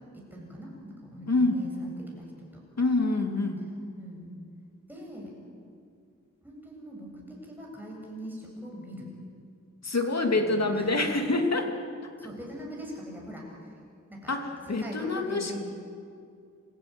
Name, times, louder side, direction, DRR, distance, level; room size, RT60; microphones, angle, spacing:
voice 1, 0.1-2.6 4.0-4.3 4.9-5.4 6.4-9.1 10.3-10.9 12.2-13.5 14.1-14.4 14.7-15.6, equal, 5° right, -2 dB, 7.9 m, -42 dB
voice 2, 1.3-1.6 2.8-3.6 9.8-11.7 14.3-15.6, left 2 dB, 60° left, 3 dB, 2.9 m, -26 dB
27.5 x 16.0 x 9.3 m, 2.3 s
wide cardioid pair, 95°, 30 cm